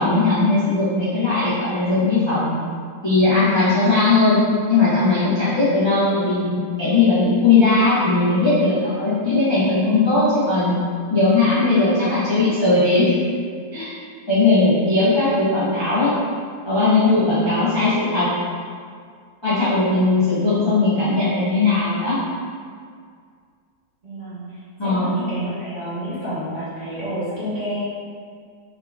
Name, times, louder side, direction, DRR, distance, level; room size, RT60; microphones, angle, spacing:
voice 1, 0.0-2.5 3.0-4.4 4.7-10.7 11.1-13.1 13.7-13.9 14.3-16.1 16.6-18.3 19.4-22.2 24.8-25.1, left 3 dB, 25° left, -12 dB, 0.6 m, -18 dB
voice 2, 24.0-27.8, right 1 dB, 35° right, -12 dB, 1.0 m, -29 dB
3.6 x 3.6 x 2.3 m, 2.1 s
omnidirectional pair, 1.7 m